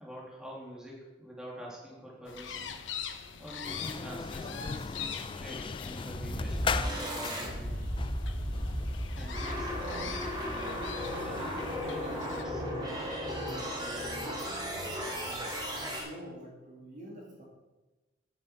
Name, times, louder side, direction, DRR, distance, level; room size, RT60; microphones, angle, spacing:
voice 1, 0.0-2.8 3.4-7.7 9.1-10.8 11.2-14.5, equal, 5° right, -5 dB, 2.4 m, -46 dB
sound 1, 2.3-12.4, left 6 dB, 90° left, 0.9 m, -43 dB
sound 2, 3.6-11.8, left 5 dB, 25° left, 0.3 m, -39 dB
sound 3, 6.1-16.0, equal, 25° right, 2.3 m, -35 dB
voice 2, 16.0-17.4, right 1 dB, 45° right, -2 dB, 2.4 m, -46 dB
9.4 x 6.1 x 5.8 m, 1.1 s
head